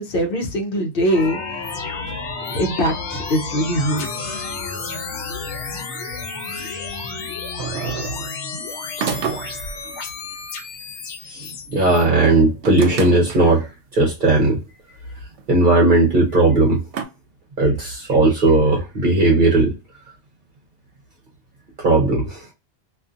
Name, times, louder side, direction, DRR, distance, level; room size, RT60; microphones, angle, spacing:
voice 1, 0.0-1.4 2.5-4.5, equal, 60° left, 0.8 m, -22 dB
sound 1, 1.1-12.0, left 4 dB, 85° left, 0.9 m, -31 dB
voice 2, 6.5-6.9 11.3-13.7 13.9-14.6 15.5-16.8 17.6-19.7 21.8-22.5, right 2 dB, 50° right, 0.9 m, -17 dB
sound 2, 7.6-8.4 9.0-9.8 12.1-13.5 14.5-14.6 15.4-15.5 16.9-17.0, right 7 dB, 80° right, 0.9 m, -29 dB
2.5 x 2.4 x 2.4 m
omnidirectional pair, 1.1 m